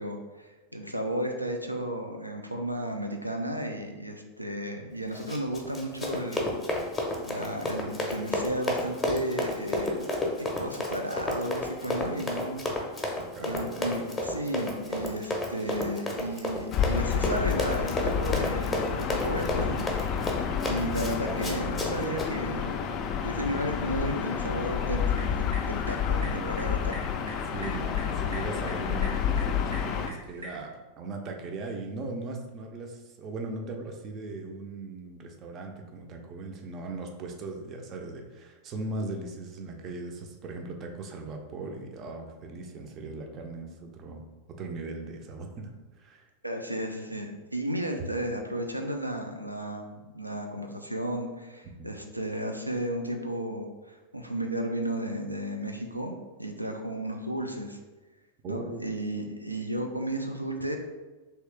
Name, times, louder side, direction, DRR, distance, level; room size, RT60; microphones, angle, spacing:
voice 1, 0.0-6.5 7.3-10.1 10.4-12.6 13.4-20.3 20.6-22.9 23.2-26.9 46.4-57.8 58.5-60.8, right 1 dB, 90° right, 3 dB, 0.4 m, -33 dB
Run, 5.1-22.3, left 1 dB, 15° left, 0.7 m, -32 dB
voice 2, 13.0-13.8 27.5-44.3 44.6-45.7 46.0-46.3 51.6-51.9 58.4-58.9, right 3 dB, 30° right, 3 dB, 0.5 m, -39 dB
Gull seagull / Ocean, 16.7-30.1, left 7 dB, 35° left, 0.3 m, -30 dB
sound 1, 25.0-30.6, equal, 70° right, 1.2 m, -45 dB
3.0 x 2.8 x 3.3 m, 1.2 s
figure-of-eight pair, 90°, 0 cm